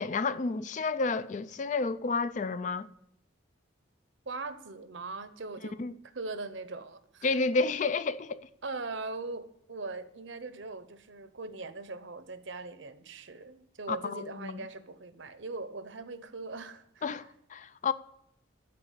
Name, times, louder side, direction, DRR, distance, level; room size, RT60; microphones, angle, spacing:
voice 1, 0.0-2.9 5.8-5.9 7.2-8.5 13.9-14.6 17.0-17.9, left 4 dB, 35° left, 0.3 m, -30 dB
voice 2, 4.3-5.8 6.1-7.3 8.6-17.2, right 3 dB, 65° right, 0.9 m, -40 dB
12.5 x 4.8 x 8.3 m
head